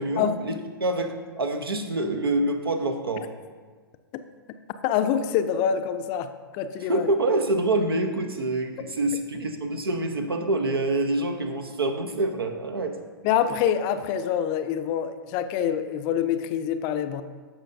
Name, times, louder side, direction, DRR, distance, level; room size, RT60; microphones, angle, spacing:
voice 1, 0.0-3.3 6.9-13.0, right 2 dB, 80° right, 6 dB, 0.9 m, -26 dB
voice 2, 4.8-7.1 13.2-17.2, left 9 dB, 35° left, 10 dB, 0.5 m, -26 dB
15.0 x 5.6 x 2.7 m, 1.5 s
figure-of-eight pair, 110°, 12 cm